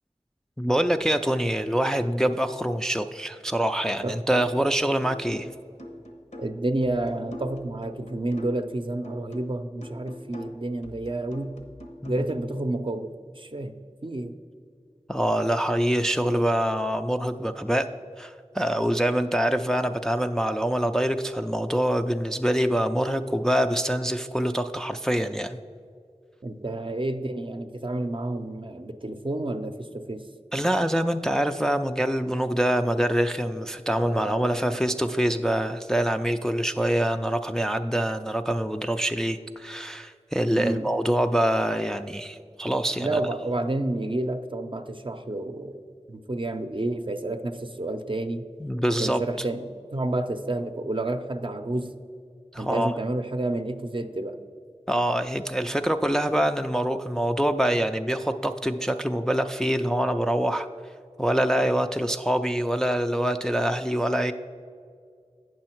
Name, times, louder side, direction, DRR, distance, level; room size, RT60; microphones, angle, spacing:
voice 1, 0.6-5.5 12.0-12.2 15.1-17.9 18.2-25.6 30.5-43.2 48.6-49.2 52.5-52.9 54.9-60.7 61.2-64.3, equal, 5° left, 7 dB, 0.3 m, -25 dB
sound 1, 4.3-4.7 5.0-8.7 9.0-12.3, equal, 80° left, 1.0 m, -43 dB
voice 2, 6.4-11.6 12.1-13.8 14.0-14.3 26.4-30.3 34.0-34.8 40.5-40.9 43.0-45.8 46.1-48.5 48.9-51.9 52.6-54.4, right 2 dB, 45° right, 7 dB, 0.5 m, -30 dB
8.7 x 6.3 x 4.4 m, 2.2 s
wide cardioid pair, 40°, 12 cm